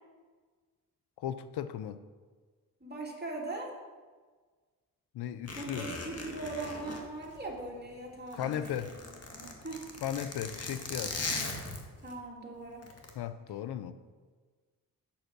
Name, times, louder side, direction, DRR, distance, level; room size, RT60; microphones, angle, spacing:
voice 1, 1.2-2.0 5.1-5.9 8.3-8.9 10.0-11.2 13.2-13.9, left 10 dB, 80° left, 13 dB, 0.7 m, -36 dB
voice 2, 2.8-3.7 5.6-8.7 9.3-9.8 12.0-12.9, right 2 dB, 25° right, -2 dB, 2.9 m, -40 dB
Zipper (clothing), 5.5-7.9 8.2-12.1 12.8-13.1, left 3 dB, 40° left, 1.8 m, -39 dB
8.9 x 6.3 x 6.2 m, 1.4 s
supercardioid pair, 55°, 38 cm